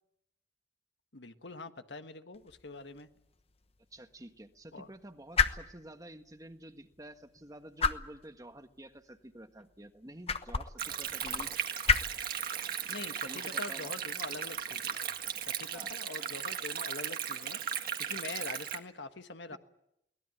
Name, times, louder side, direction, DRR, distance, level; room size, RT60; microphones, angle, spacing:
voice 1, 1.1-3.1 4.7-4.9 11.2-11.4 12.9-15.1 15.4-19.6, left 3 dB, 85° left, 9 dB, 1.4 m, -44 dB
sound 1, 2.3-15.9, left 5 dB, 35° left, 1.1 m, -37 dB
voice 2, 3.9-11.5 13.2-13.9 15.7-15.9 19.5-19.6, right 1 dB, 20° right, 7 dB, 1.4 m, -50 dB
Stream, 10.8-18.8, right 8 dB, 55° right, 1.8 m, -37 dB
23.0 x 18.5 x 9.1 m, 0.82 s
head